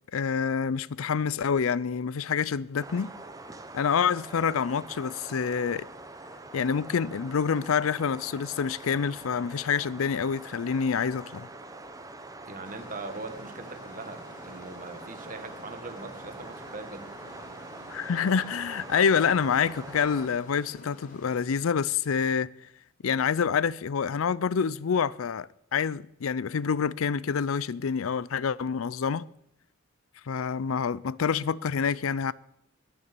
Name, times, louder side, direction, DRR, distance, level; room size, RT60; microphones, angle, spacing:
voice 1, 0.1-3.1 3.7-5.9 6.5-11.5 17.9-22.5 23.0-29.3 30.3-32.3, left 6 dB, 85° left, 0.5 m, -27 dB
sound 1, 2.8-20.3, right 2 dB, 15° right, 0.9 m, -44 dB
voice 2, 12.4-17.1, right 3 dB, 40° right, 1.5 m, -41 dB
sound 2, 12.6-21.4, left 1 dB, 40° left, 3.0 m, -50 dB
20.5 x 7.0 x 6.8 m
head